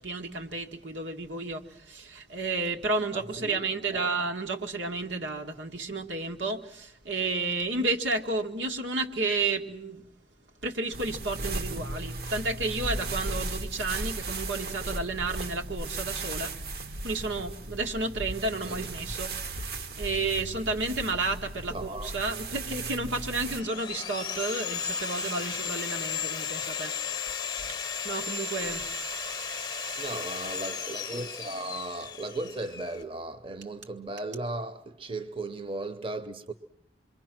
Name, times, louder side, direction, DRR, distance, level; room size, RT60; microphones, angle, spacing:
voice 1, 0.0-10.1 10.6-26.9 27.7-27.8 28.0-28.9, right 3 dB, 85° right, 1.9 m, -32 dB
voice 2, 3.1-4.1 18.6-18.8 21.7-22.1 30.0-36.5, right 2 dB, 30° right, 0.9 m, -36 dB
sound 1, 10.9-23.6, right 2 dB, 55° right, 1.0 m, -36 dB
Sawing, 23.1-33.0, left 6 dB, 25° left, 0.9 m, -35 dB
27.0 x 22.5 x 6.1 m
head